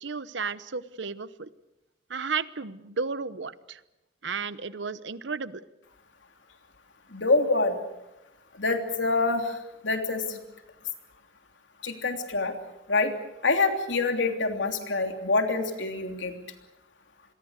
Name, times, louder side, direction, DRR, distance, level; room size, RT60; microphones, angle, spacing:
voice 1, 0.0-1.5 2.1-3.8 4.2-5.6, right 5 dB, 80° right, 15 dB, 1.0 m, -33 dB
voice 2, 7.1-7.8 8.5-9.6 9.8-10.4 11.8-12.5 12.9-13.1 13.4-16.3, left 3 dB, 90° left, 5 dB, 3.1 m, -26 dB
26.5 x 22.0 x 6.6 m, 0.97 s
head